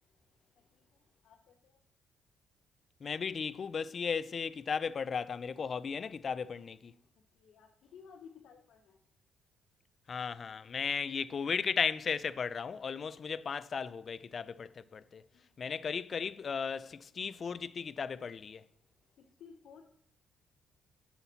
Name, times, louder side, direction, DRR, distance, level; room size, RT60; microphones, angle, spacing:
voice 1, 0.5-1.8 7.3-9.0 15.3-15.7 19.2-19.8, left 6 dB, 70° left, 0.7 m, -57 dB
voice 2, 3.0-6.9 10.1-15.2 15.6-18.6, left 6 dB, 45° left, 0.3 m, -35 dB
8.1 x 5.7 x 2.7 m
cardioid pair, 105°, 0 cm